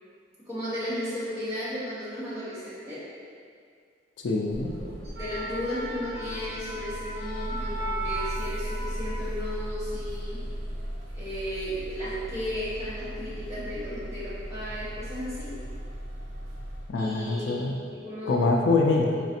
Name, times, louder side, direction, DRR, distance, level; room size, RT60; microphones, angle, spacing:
voice 1, 0.5-3.0 4.8-4.9 5.2-10.4 11.1-15.5 16.9-17.6 17.9-18.4 19.1-19.2, left 1 dB, 15° right, -12 dB, 1.2 m, -34 dB
voice 2, 4.2-4.7 16.9-17.7 18.3-19.1, left 3 dB, 65° left, 0 dB, 0.4 m, -24 dB
sound 1, 4.5-16.9, equal, 85° right, 0.8 m, -37 dB
sound 2, 4.9-9.7 10.0-10.3, right 2 dB, 55° right, 1.0 m, -37 dB
4.0 x 3.2 x 2.8 m, 2.1 s
head